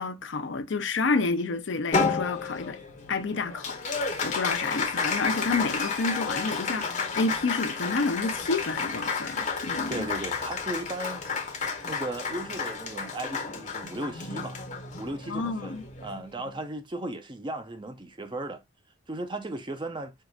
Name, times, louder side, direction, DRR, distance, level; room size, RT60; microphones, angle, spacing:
voice 1, 0.0-2.8 3.1-10.1 15.3-15.8, left 3 dB, 65° left, 0.5 m, -29 dB
Applause, 1.9-16.6, left 4 dB, 35° left, 0.8 m, -31 dB
voice 2, 9.9-11.2 11.8-14.6 15.0-18.6 19.1-20.1, right 2 dB, 25° right, 0.5 m, -36 dB
4.6 x 2.5 x 2.3 m
head